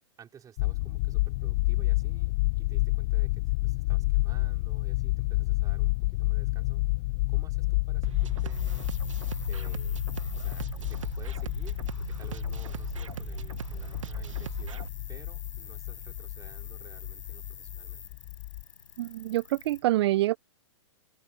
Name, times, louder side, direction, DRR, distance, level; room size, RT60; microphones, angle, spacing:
voice 1, 0.2-6.9 7.3-8.9 9.4-10.0 10.3-18.2, right 8 dB, 20° right, 4.7 m, -53 dB
sound 1, 0.6-18.6, left 22 dB, 45° left, 0.5 m, -30 dB
sound 2, 8.0-14.9, right 8 dB, 80° right, 1.2 m, -39 dB
sound 3, 8.5-19.8, left 7 dB, 80° left, 7.5 m, -49 dB
voice 2, 19.0-20.4, right 15 dB, 55° right, 0.5 m, -26 dB
open air
hypercardioid pair, 115°, 16 cm